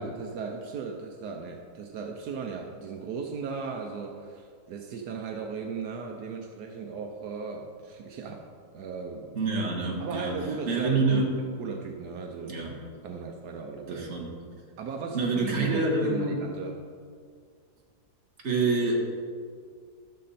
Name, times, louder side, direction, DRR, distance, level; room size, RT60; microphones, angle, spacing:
voice 1, 0.0-8.4 8.7-9.4 10.0-11.2 11.6-12.5 13.0-14.1 14.8-16.7, right 5 dB, 80° right, 2 dB, 1.3 m, -36 dB
voice 2, 9.4-10.4 10.7-11.4 12.5-12.8 13.9-14.3 15.1-16.4 18.4-19.0, right 3 dB, 45° right, -1 dB, 1.8 m, -27 dB
13.5 x 6.6 x 4.2 m, 2.1 s
omnidirectional pair, 1.7 m